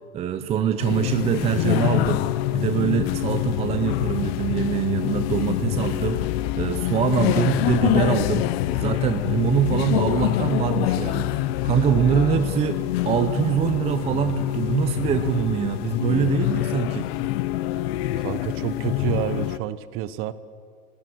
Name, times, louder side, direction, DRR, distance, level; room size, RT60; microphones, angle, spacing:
voice 1, 0.1-6.2 6.6-8.5 8.7-17.1, right 9 dB, 15° right, 8 dB, 0.5 m, -24 dB
sound 1, 0.8-19.6, left 15 dB, 45° left, 0.7 m, -25 dB
voice 2, 18.1-20.3, right 13 dB, 30° right, 15 dB, 0.9 m, -29 dB
29.5 x 19.5 x 6.2 m, 2.2 s
supercardioid pair, 140°, 43 cm